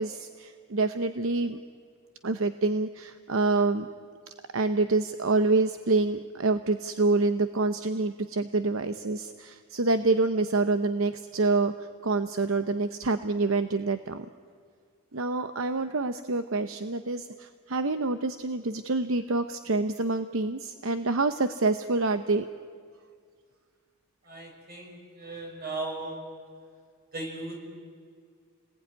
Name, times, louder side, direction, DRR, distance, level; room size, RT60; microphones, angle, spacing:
voice 1, 0.0-1.6 2.2-3.9 4.3-14.3 15.1-22.5, right 3 dB, 75° right, 10 dB, 0.9 m, -27 dB
voice 2, 24.3-26.2 27.1-27.6, right 2 dB, 50° right, 1 dB, 6.8 m, -37 dB
29.5 x 20.0 x 9.6 m, 2.1 s
head